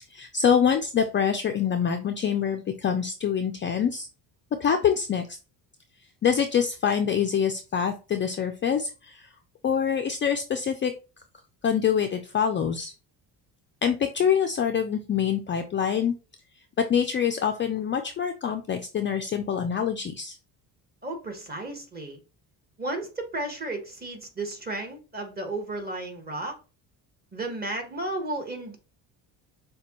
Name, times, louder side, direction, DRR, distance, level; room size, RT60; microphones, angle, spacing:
voice 1, 0.1-4.1 4.6-5.2 6.2-9.2 9.6-10.9 11.6-12.9 13.8-16.1 16.8-20.4, left 7 dB, 30° left, 5 dB, 0.4 m, -25 dB
voice 2, 21.0-22.2 22.8-26.6 27.3-28.8, right 2 dB, 20° right, 4 dB, 1.3 m, -33 dB
6.6 x 2.3 x 3.0 m, 0.32 s
cardioid pair, 100°, 42 cm